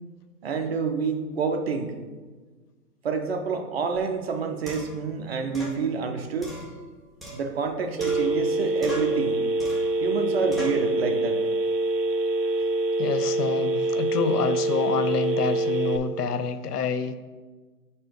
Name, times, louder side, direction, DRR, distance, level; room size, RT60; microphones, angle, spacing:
voice 1, 0.4-2.0 3.0-6.5 7.3-9.4 10.0-11.4 12.6-12.7, right 5 dB, 40° right, 5 dB, 0.7 m, -28 dB
sound 1, 3.9-4.0 4.7-5.0 5.5-5.8 6.4-7.7 8.0-8.5 8.8-9.2 9.6-10.0 10.5-10.9, equal, ahead, 0.3 m, -39 dB
Telephone, 8.0-16.0, right 3 dB, 75° right, 0.7 m, -25 dB
voice 2, 13.0-17.1, left 6 dB, 65° left, 10 dB, 0.7 m, -28 dB
5.4 x 4.3 x 5.1 m, 1.4 s
hypercardioid pair, 150°, 49 cm